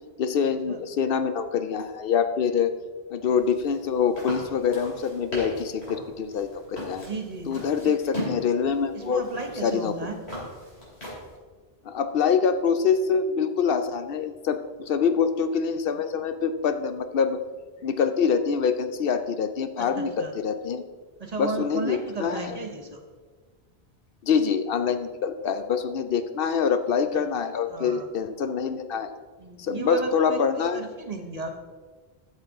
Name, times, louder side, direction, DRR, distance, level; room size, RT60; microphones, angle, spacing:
voice 1, 0.2-2.7 3.1-7.1 7.5-9.2 9.6-9.9 11.9-17.4 17.8-20.8 21.4-22.5 24.2-29.1 29.6-30.8, left 6 dB, 65° left, 9 dB, 0.7 m, -25 dB
sound 1, 3.2-11.4, left 1 dB, 90° left, 3.5 m, -39 dB
voice 2, 7.0-7.5 8.9-10.1 19.8-20.3 21.2-23.0 27.7-28.1 29.4-31.5, right 3 dB, 40° right, 4 dB, 1.0 m, -35 dB
12.5 x 6.7 x 3.6 m, 1.4 s
omnidirectional pair, 1.1 m